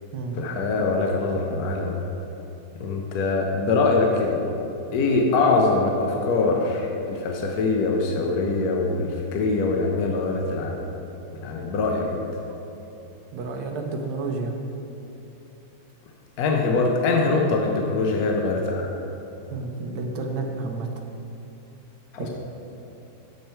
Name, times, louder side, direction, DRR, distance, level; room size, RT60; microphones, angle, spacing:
voice 1, 0.4-2.0 2.8-4.4 4.9-10.8 11.4-12.2 16.4-18.9 22.1-22.3, left 3 dB, 70° left, 1 dB, 0.9 m, -23 dB
voice 2, 13.3-14.5 19.5-20.9 22.2-22.3, right 3 dB, 65° right, 2 dB, 1.3 m, -30 dB
6.6 x 6.5 x 4.4 m, 3.0 s
omnidirectional pair, 2.3 m